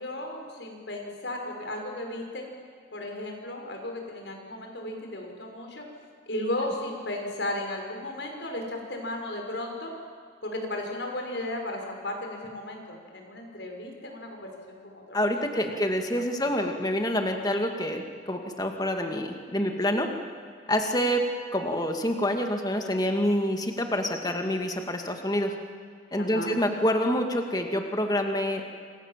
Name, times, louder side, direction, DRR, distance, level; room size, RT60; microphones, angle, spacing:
voice 1, 0.0-2.4 2.9-5.8 6.3-9.9 10.4-15.8 16.1-16.2 26.2-26.5, left 1 dB, 70° left, 2 dB, 6.3 m, -35 dB
voice 2, 15.1-20.1 20.7-21.2 21.5-25.5 26.1-28.6, equal, 20° left, 4 dB, 2.4 m, -27 dB
28.0 x 26.0 x 7.7 m, 2.1 s
head